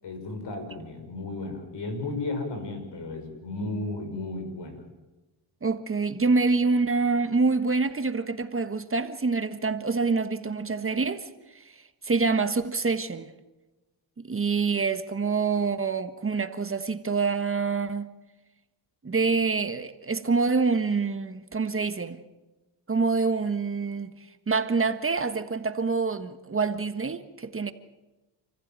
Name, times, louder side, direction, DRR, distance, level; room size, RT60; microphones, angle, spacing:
voice 1, 0.0-4.8, left 2 dB, 55° left, 6.4 m, -34 dB
voice 2, 5.6-11.2 11.5-11.7 12.0-13.3 14.2-18.1 19.0-22.2 22.9-24.1 24.5-27.7, right 4 dB, 25° right, 1.5 m, -26 dB
28.0 x 15.0 x 9.1 m
cardioid pair, 85°, 49 cm